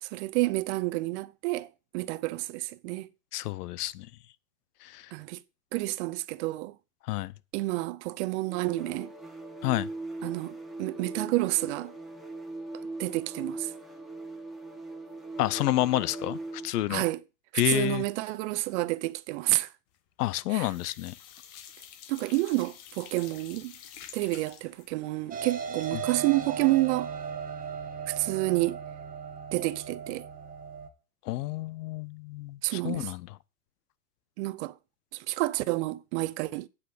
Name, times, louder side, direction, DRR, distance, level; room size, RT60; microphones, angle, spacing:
voice 1, 0.0-3.1 5.1-5.4 5.7-6.8 7.5-9.1 10.2-11.9 13.0-13.7 16.9-17.2 17.5-19.7 20.5-20.7 22.1-23.7 24.1-27.1 28.1-28.8 29.5-30.3 32.6-33.1 34.4-34.7 35.1-36.7, right 20 dB, 50° right, 0.6 m, -29 dB
voice 2, 3.3-4.1 4.8-5.1 7.1-7.3 9.6-9.9 15.4-17.0 17.5-18.0 20.2-21.1 25.9-26.0 31.2-33.3, left 16 dB, 75° left, 0.8 m, -29 dB
sound 1, 8.4-16.8, right 2 dB, ahead, 1.5 m, -40 dB
sound 2, 19.9-20.4 20.6-27.5 27.8-27.9 28.2-28.3, left 9 dB, 40° left, 1.6 m, -50 dB
sound 3, 25.3-30.9, right 6 dB, 20° right, 1.0 m, -37 dB
8.7 x 5.1 x 7.8 m
supercardioid pair, 135°, 47 cm